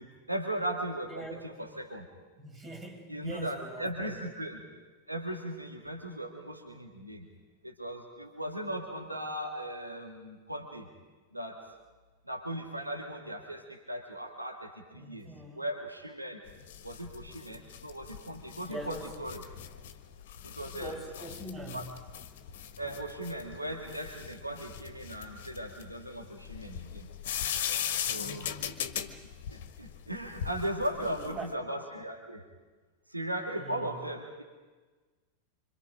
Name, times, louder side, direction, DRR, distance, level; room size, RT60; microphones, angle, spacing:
voice 1, 0.0-2.1 3.1-4.7 5.1-7.3 7.6-10.9 11.3-11.7 12.2-16.5 16.8-19.4 20.4-21.0 21.7-21.8 22.8-27.1 28.1-28.5 29.5-32.5 33.1-34.4, right 1 dB, 85° right, 2 dB, 2.4 m, -38 dB
voice 2, 1.1-1.4 2.4-4.1 15.0-15.7 18.7-19.1 20.8-21.9 28.1-28.5 31.0-31.4 33.6-33.9, right 1 dB, 20° right, 2 dB, 5.7 m, -43 dB
sound 1, 16.5-31.5, left 9 dB, 55° left, 1.5 m, -39 dB
26.5 x 26.0 x 5.1 m, 1.3 s
figure-of-eight pair, 90°, 0 cm